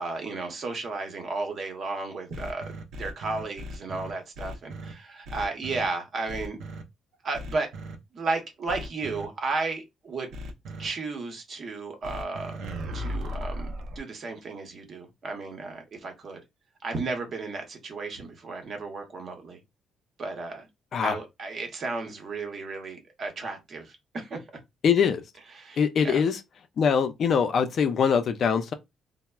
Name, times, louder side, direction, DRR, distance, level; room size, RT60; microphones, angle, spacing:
voice 1, 0.0-2.7 3.0-6.6 7.2-7.7 8.1-10.3 10.8-12.6 12.9-16.4 16.8-19.6 20.2-20.7 21.0-24.4 25.5-26.2, right 3 dB, 55° right, 0.8 m, -34 dB
sound 1, 2.3-4.9 5.2-5.8 6.3-6.8 7.3-8.0 8.7-9.2 10.3-10.9 12.0-14.0, equal, 80° right, 0.5 m, -36 dB
voice 2, 24.8-25.2 25.8-26.4 26.8-28.7, left 6 dB, 60° left, 0.4 m, -23 dB
3.1 x 2.0 x 2.2 m
cardioid pair, 90°, 0 cm